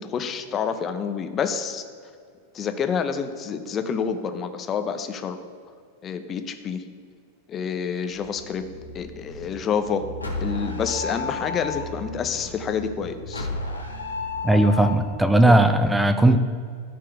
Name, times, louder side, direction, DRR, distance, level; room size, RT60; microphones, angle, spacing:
voice 1, 0.0-1.8 2.5-5.4 6.0-6.8 7.5-8.6 8.9-10.1 10.4-13.5 16.2-16.4, left 6 dB, 25° left, 8 dB, 0.8 m, -28 dB
sound 1, 8.1-15.1, left 3 dB, 85° left, 1.3 m, -33 dB
voice 2, 14.4-16.4, right 1 dB, 5° right, 8 dB, 0.5 m, -17 dB
13.5 x 4.7 x 4.9 m, 2.2 s
figure-of-eight pair, 90°, 0 cm